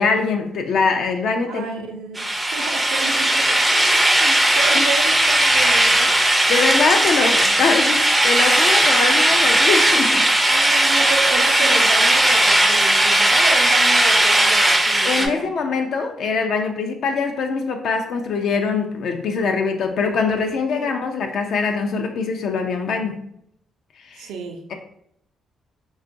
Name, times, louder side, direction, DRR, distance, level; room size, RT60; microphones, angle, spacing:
voice 1, 0.0-1.6 4.4-4.8 6.5-10.6 15.0-23.2 24.0-24.3, left 4 dB, 70° left, 4 dB, 0.3 m, -23 dB
voice 2, 1.5-6.2 10.5-15.5 20.7-20.9 24.2-24.7, right 5 dB, 90° right, 4 dB, 0.4 m, -31 dB
sound 1, 2.2-15.3, right 1 dB, 10° right, 0.4 m, -17 dB
2.9 x 2.3 x 2.5 m, 0.72 s
cardioid pair, 90°, 0 cm